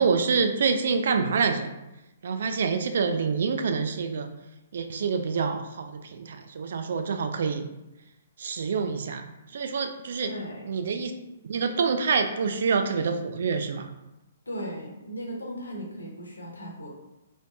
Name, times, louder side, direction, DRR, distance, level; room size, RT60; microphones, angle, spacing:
voice 1, 0.0-1.7 2.2-4.3 4.7-7.7 8.4-9.3 9.5-10.3 10.7-11.1 11.4-13.9, right 5 dB, 55° right, 7 dB, 0.3 m, -26 dB
voice 2, 10.3-10.7 14.5-16.9, equal, 75° left, -2 dB, 1.0 m, -37 dB
3.9 x 3.3 x 2.5 m, 0.94 s
figure-of-eight pair, 120°, 0 cm